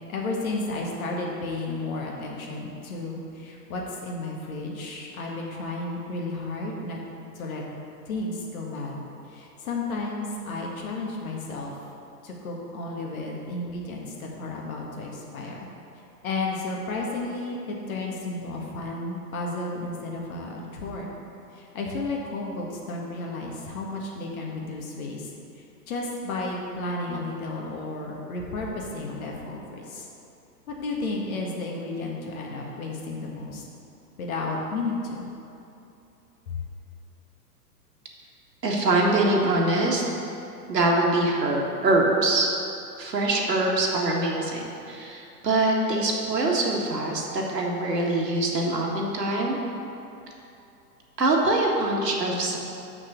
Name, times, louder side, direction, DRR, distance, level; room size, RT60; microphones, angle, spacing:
voice 1, 0.1-7.0 7.3-7.6 8.1-9.0 9.3-11.8 12.2-15.7 16.2-21.1 21.5-25.3 25.6-30.1 30.7-33.6 34.2-35.3 36.5-36.6, left 2 dB, 55° left, -1 dB, 1.9 m, -32 dB
voice 2, 38.6-40.0 40.7-42.5 43.0-49.6 51.2-52.6, right 2 dB, 75° right, -1 dB, 1.8 m, -24 dB
6.3 x 6.2 x 6.7 m, 2.8 s
figure-of-eight pair, 115°, 49 cm